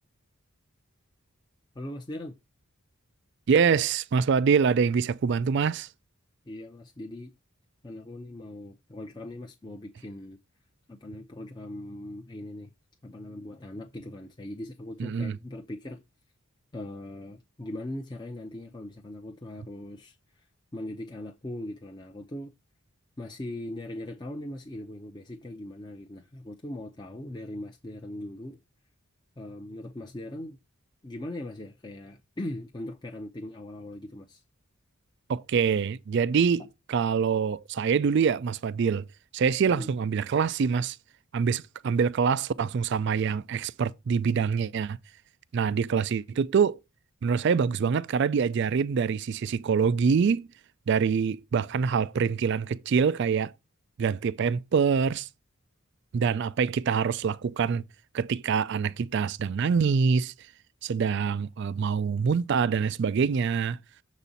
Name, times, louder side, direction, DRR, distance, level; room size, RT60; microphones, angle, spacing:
voice 1, 1.7-2.3 6.5-7.3 7.8-10.4 10.9-12.7 13.0-16.0 16.7-20.4 20.7-22.5 23.2-28.6 29.4-30.6 31.0-34.4 39.7-39.9, left 1 dB, 20° left, 0.6 m, -40 dB
voice 2, 3.5-5.9 15.0-15.4 35.3-36.6 36.9-39.0 39.3-41.0 41.3-45.0 45.5-46.8 47.2-50.5 50.9-53.5 54.0-55.3 56.1-57.8 58.1-60.3 60.8-63.8, right 6 dB, 55° right, 0.3 m, -25 dB
7.1 x 4.2 x 5.2 m
head